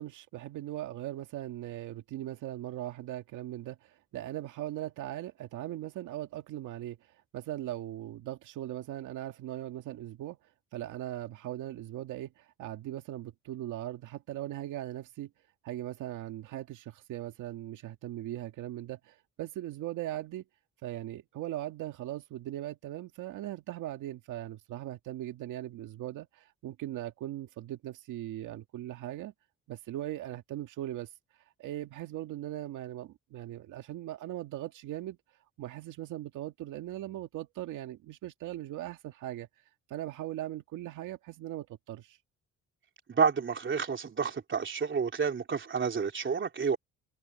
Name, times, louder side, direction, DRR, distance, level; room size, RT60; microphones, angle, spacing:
voice 1, 0.0-10.4 10.7-15.3 15.6-20.4 20.8-29.3 29.7-31.1 31.6-35.2 35.6-39.5 39.9-42.2, right 13 dB, 90° right, 2.0 m, -39 dB
voice 2, 43.1-46.8, right 6 dB, 40° right, 3.5 m, -29 dB
cardioid pair, 90°, 30 cm